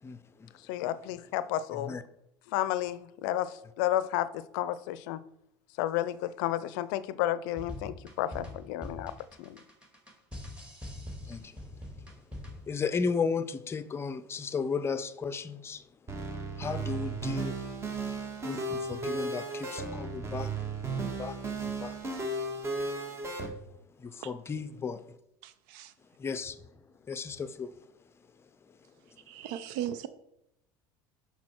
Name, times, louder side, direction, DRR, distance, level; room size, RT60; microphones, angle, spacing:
voice 1, 0.0-0.5 1.7-2.0 11.3-11.6 12.7-15.8 16.6-17.6 18.4-20.5 21.0-22.0 24.0-25.0 26.2-26.6 27.1-27.7, left 5 dB, 25° left, 0.6 m, -34 dB
voice 2, 0.7-1.9 2.5-5.2 5.8-9.1 9.4-9.6, left 13 dB, 70° left, 0.5 m, -32 dB
sound 1, 7.6-12.7, left 1 dB, 10° right, 2.2 m, -43 dB
sound 2, 16.1-23.5, right 3 dB, 25° right, 1.5 m, -35 dB
voice 3, 25.4-25.9 29.3-30.1, right 11 dB, 70° right, 0.5 m, -37 dB
6.2 x 5.5 x 4.4 m
hypercardioid pair, 90°, 11 cm